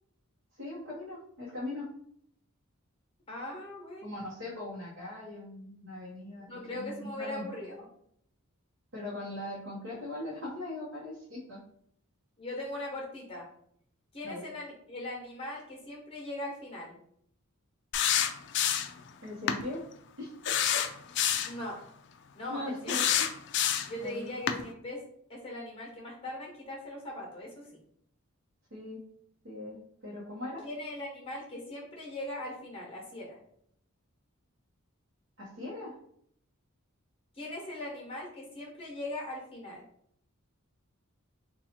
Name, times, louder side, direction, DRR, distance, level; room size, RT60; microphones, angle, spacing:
voice 1, 0.5-1.9 4.0-7.5 8.9-11.6 14.2-14.4 19.2-19.8 20.2-20.5 22.5-23.3 24.0-24.3 28.7-29.0 29.4-30.6 35.4-35.9, left 2 dB, 60° right, -7 dB, 0.9 m, -40 dB
voice 2, 3.3-4.1 6.5-7.9 12.4-13.5 14.1-17.0 21.4-21.8 22.3-23.0 23.9-25.0 25.3-27.7 30.6-33.4 37.3-39.8, left 1 dB, 25° left, -2 dB, 1.1 m, -40 dB
sound 1, 17.9-19.0 19.5-19.6 20.4-21.6 22.9-24.0 24.5-24.6, left 9 dB, 55° left, 0.3 m, -27 dB
2.8 x 2.3 x 4.2 m, 0.68 s
head